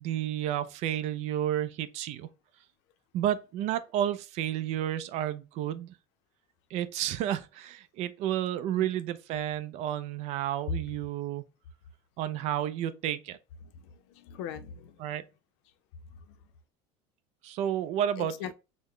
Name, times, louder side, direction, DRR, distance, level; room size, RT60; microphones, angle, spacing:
voice 1, 0.0-2.3 3.1-5.9 6.7-11.4 12.2-13.4 15.0-15.2 17.4-18.5, right 11 dB, 50° right, 0.4 m, -31 dB
voice 2, 13.6-15.0 16.3-16.4 18.2-18.5, left 9 dB, 80° left, 0.5 m, -41 dB
3.8 x 2.1 x 3.1 m
cardioid pair, 140°, 14 cm